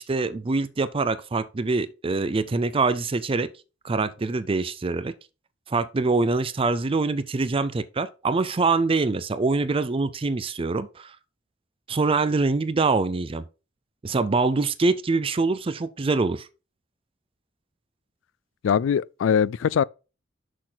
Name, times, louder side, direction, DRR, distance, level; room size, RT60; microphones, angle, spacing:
voice 1, 0.0-3.5 3.8-5.1 5.7-11.2 11.9-13.4 14.0-16.5, right 3 dB, 30° right, 0.4 m, -24 dB
voice 2, 18.6-19.8, left 7 dB, 75° left, 0.3 m, -22 dB
6.4 x 6.0 x 3.9 m
head